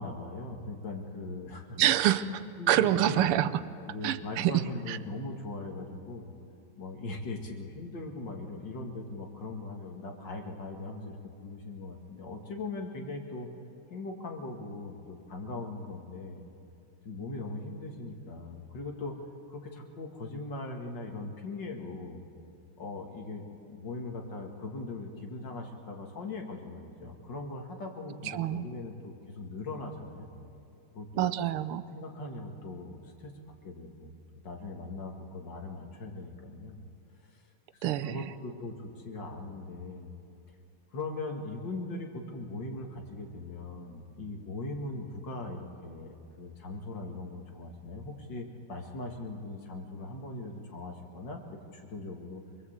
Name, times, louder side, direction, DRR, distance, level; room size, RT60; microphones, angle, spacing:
voice 1, 0.0-1.8 2.6-3.3 3.8-6.3 6.8-13.5 13.9-16.4 17.0-22.2 22.8-30.6 30.9-31.3 31.9-33.3 33.6-34.1 34.4-36.8 37.2-37.4 37.7-40.1 40.9-52.4, left 2 dB, 55° left, 2 dB, 2.7 m, -40 dB
voice 2, 1.8-3.5 4.0-4.6 4.9-5.0 28.2-28.7 31.2-31.8 37.8-38.3, right 12 dB, 85° right, 14 dB, 1.6 m, -26 dB
25.0 x 22.0 x 8.2 m, 2.7 s
omnidirectional pair, 2.4 m